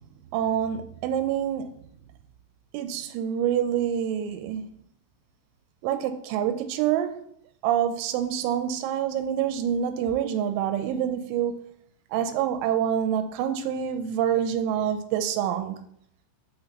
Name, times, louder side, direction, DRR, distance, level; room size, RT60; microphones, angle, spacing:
voice 1, 0.3-1.8 2.7-4.7 5.8-7.2 7.6-11.7 12.1-15.9, right 9 dB, 85° right, 3.0 m, -26 dB
8.0 x 5.7 x 2.9 m
omnidirectional pair, 5.4 m